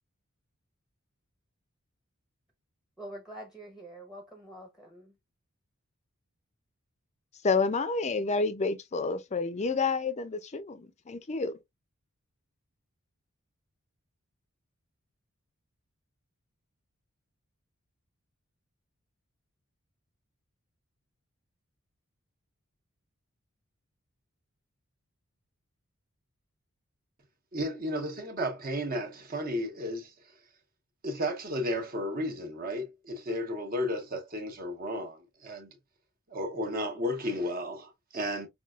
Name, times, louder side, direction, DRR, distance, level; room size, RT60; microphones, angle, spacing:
voice 1, 3.0-5.1, right 1 dB, 5° right, 0.8 m, -45 dB
voice 2, 7.4-11.6, left 4 dB, 30° left, 0.5 m, -29 dB
voice 3, 27.5-30.1 31.0-35.2 35.4-35.7 36.3-38.5, equal, 45° right, 0.9 m, -33 dB
5.3 x 2.3 x 2.4 m
head